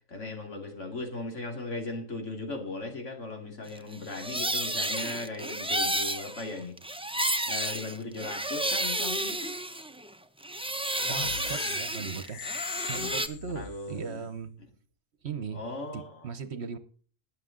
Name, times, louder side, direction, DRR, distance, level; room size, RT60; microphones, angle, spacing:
voice 1, 0.1-6.8 7.5-9.5 13.5-14.3 15.5-16.3, left 2 dB, 65° left, 4 dB, 2.7 m, -38 dB
sound 1, 3.9-10.1 10.4-13.3, right 1 dB, 10° right, 0.3 m, -31 dB
sound 2, 10.8-14.0, left 7 dB, 90° left, 1.4 m, -39 dB
voice 2, 11.1-12.4 12.9-14.5 15.2-15.6 15.9-16.8, right 6 dB, 60° right, 13 dB, 1.2 m, -38 dB
20.0 x 6.8 x 3.8 m, 0.43 s
omnidirectional pair, 1.3 m